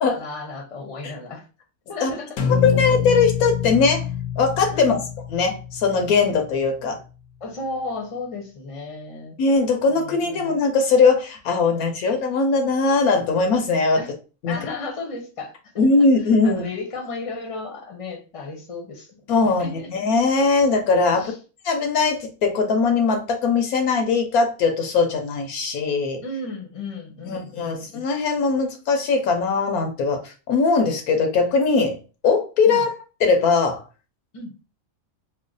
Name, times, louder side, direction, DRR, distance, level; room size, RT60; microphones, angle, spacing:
voice 1, 0.0-1.4 1.9-2.5 4.7-5.0 7.4-9.4 9.9-10.5 13.9-14.1 14.5-16.1 16.4-19.1 19.4-19.9 21.1-21.3 26.2-27.9 32.7-32.8 34.3-34.5, left 3 dB, 30° left, 2 dB, 0.7 m, -34 dB
sound 1, 2.4-6.6, left 8 dB, 70° left, 1.0 m, -26 dB
voice 2, 2.6-4.0 4.4-5.0 5.3-7.0 9.4-14.0 14.4-14.6 15.8-16.6 19.3-21.3 21.6-26.2 27.2-32.0 32.2-32.9 33.2-33.8, left 4 dB, 85° left, 4 dB, 1.2 m, -20 dB
3.1 x 2.1 x 3.8 m, 0.34 s
omnidirectional pair, 1.5 m